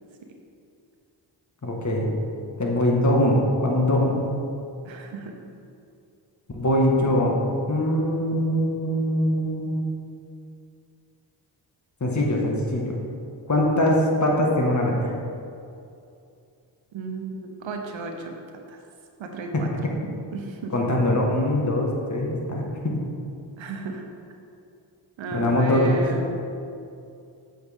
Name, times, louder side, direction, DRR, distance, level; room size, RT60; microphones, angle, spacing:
voice 1, 1.6-2.1 2.6-4.2 6.5-7.4 7.7-9.8 12.0-13.0 13.5-15.1 19.5-19.6 20.7-22.9 25.3-25.9, left 1 dB, 35° left, -1 dB, 1.7 m, -22 dB
voice 2, 4.8-5.4 16.9-18.3 18.7-18.8 19.2-19.7 20.3-20.9 23.6-24.0 25.2-26.4, right 3 dB, 75° right, 3 dB, 1.0 m, -34 dB
7.8 x 6.6 x 3.6 m, 2.5 s
cardioid pair, 50°, 47 cm